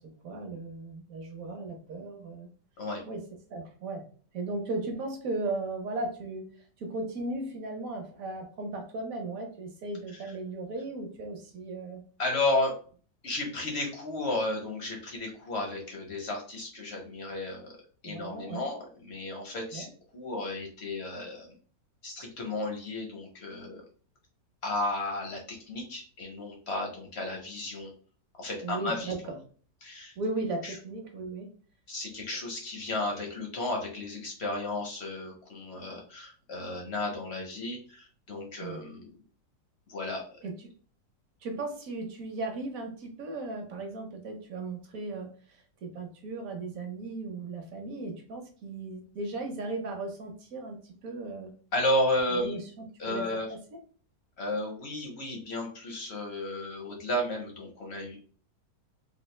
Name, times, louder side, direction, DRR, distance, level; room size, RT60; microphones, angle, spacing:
voice 1, 0.2-2.5 3.1-3.2 3.5-4.0 4.3-6.4 6.8-12.0 18.0-18.7 19.7-19.9 28.6-29.4 30.2-31.5 38.6-38.8 40.4-40.7 41.4-45.3 45.8-51.5 52.3-53.6, right 2 dB, 60° right, 3 dB, 1.0 m, -36 dB
voice 2, 12.2-12.8 13.2-17.8 18.0-21.5 22.0-23.8 24.6-27.9 28.4-29.1 29.8-30.1 30.6-30.8 31.9-39.1 39.9-40.2 51.7-52.6 53.0-53.5 54.4-58.2, left 1 dB, 60° left, 1 dB, 0.7 m, -33 dB
3.9 x 2.0 x 3.1 m, 0.42 s
omnidirectional pair, 1.9 m